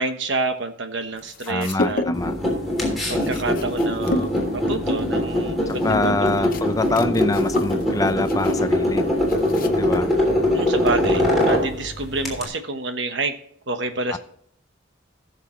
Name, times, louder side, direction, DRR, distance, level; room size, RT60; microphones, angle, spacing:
voice 1, 0.0-2.0 3.1-6.7 10.5-13.3 13.7-14.2, right 3 dB, 65° right, 7 dB, 1.2 m, -28 dB
sound 1, 1.2-2.4 2.7-10.0, left 2 dB, 45° left, 0.8 m, -31 dB
voice 2, 1.5-2.3 5.7-9.0 9.7-10.1 14.1-14.2, left 2 dB, 15° left, 11 dB, 0.4 m, -25 dB
sound 2, 2.1-12.5, left 1 dB, ahead, 3.3 m, -22 dB
17.5 x 6.7 x 3.2 m, 0.63 s
head